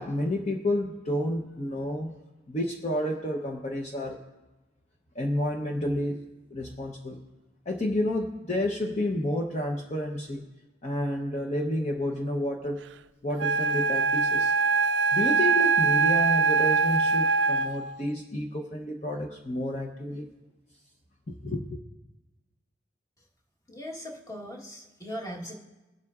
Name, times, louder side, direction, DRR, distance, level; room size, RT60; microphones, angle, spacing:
voice 1, 0.0-2.1 2.5-4.2 5.1-6.2 6.5-7.2 7.7-10.5 10.8-12.8 13.2-14.5 15.1-20.3 21.3-21.8, left 1 dB, 40° left, 1 dB, 0.7 m, -30 dB
Wind instrument woodwind instrument, 13.4-18.0, right 4 dB, 75° right, 0.4 m, -23 dB
voice 2, 23.7-25.5, equal, 20° left, 0 dB, 1.2 m, -39 dB
21.5 x 7.4 x 2.4 m, 1.1 s
head